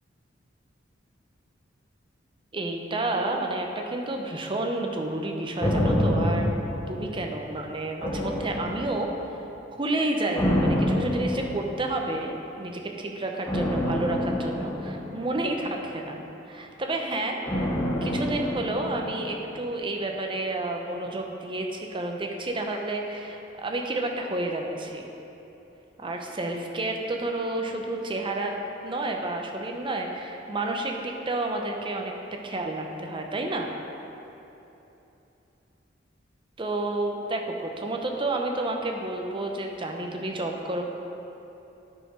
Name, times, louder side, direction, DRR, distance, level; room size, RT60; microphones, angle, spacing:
voice 1, 2.5-6.5 6.9-9.1 9.7-16.2 16.5-17.4 18.0-25.1 26.0-33.7 36.6-40.8, right 2 dB, 25° right, 2 dB, 0.7 m, -30 dB
sound 1, 5.6-7.5 8.0-9.3 10.3-12.1 13.5-15.9 17.5-19.6 19.9-20.0, equal, 15° left, 0.7 m, -27 dB
9.6 x 4.5 x 4.9 m, 3.0 s
head